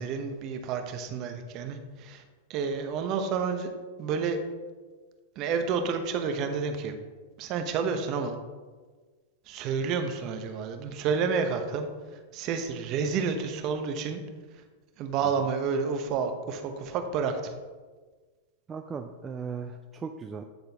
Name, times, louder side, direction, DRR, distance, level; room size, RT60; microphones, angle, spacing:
voice 1, 0.0-2.2 2.5-3.7 4.0-4.4 5.4-6.9 7.4-8.3 9.5-11.9 12.3-14.2 15.0-17.5, right 5 dB, 40° right, 6 dB, 0.8 m, -30 dB
voice 2, 18.7-20.4, right 5 dB, 20° right, 5 dB, 0.3 m, -37 dB
8.8 x 3.9 x 3.4 m, 1.4 s
hypercardioid pair, 130°, 0 cm